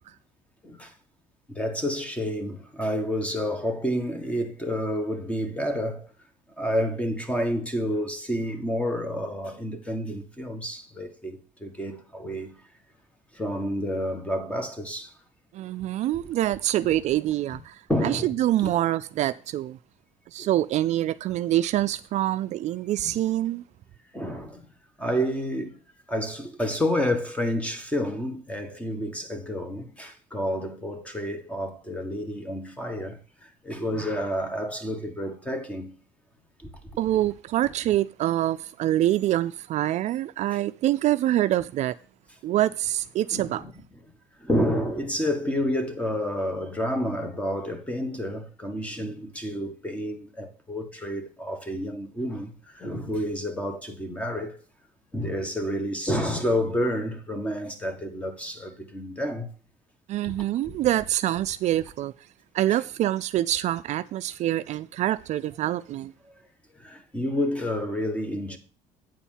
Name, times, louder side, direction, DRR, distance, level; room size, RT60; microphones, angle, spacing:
voice 1, 0.6-0.9 1.5-6.1 6.6-12.6 13.3-15.1 17.9-18.3 18.6-18.7 20.4-20.5 23.0-23.2 24.1-24.7 25.0-25.8 26.1-35.9 36.6-36.7 40.5-40.6 43.3-43.7 44.4-54.6 55.1-59.5 60.2-60.3 60.6-60.8 62.7-62.8 66.7-68.6, equal, 10° left, 1.5 m, -29 dB
voice 2, 15.5-19.8 20.3-23.6 37.0-41.9 42.4-43.6 60.1-62.1 62.5-66.1, right 13 dB, 60° right, 0.4 m, -25 dB
9.0 x 4.3 x 7.2 m
cardioid pair, 120°, 14 cm